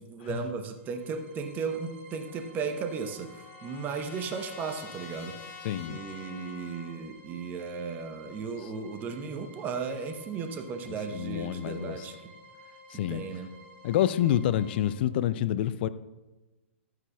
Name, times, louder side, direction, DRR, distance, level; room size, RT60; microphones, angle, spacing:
voice 1, 0.0-5.3 5.9-12.1 13.1-13.5, right 5 dB, 25° right, 1.0 m, -35 dB
sound 1, 0.7-14.9, left 1 dB, 55° right, 1.7 m, -53 dB
Trumpet, 2.3-7.0, left 7 dB, 25° left, 0.9 m, -48 dB
voice 2, 5.6-6.0 11.1-12.0 12.9-13.2 13.8-15.9, left 11 dB, 50° left, 0.4 m, -27 dB
11.5 x 9.3 x 2.4 m
figure-of-eight pair, 115°, 7 cm